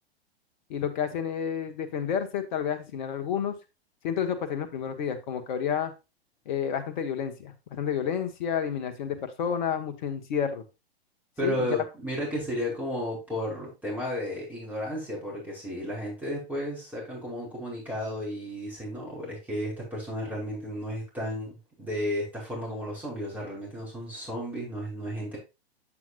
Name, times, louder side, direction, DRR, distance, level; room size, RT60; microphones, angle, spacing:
voice 1, 0.7-3.5 4.0-5.9 6.4-10.6 11.4-11.8, left 8 dB, 45° left, 9 dB, 1.6 m, -30 dB
voice 2, 11.4-25.4, equal, 5° right, -5 dB, 5.6 m, -33 dB
8.6 x 7.8 x 2.5 m, 0.26 s
figure-of-eight pair, 105°, 32 cm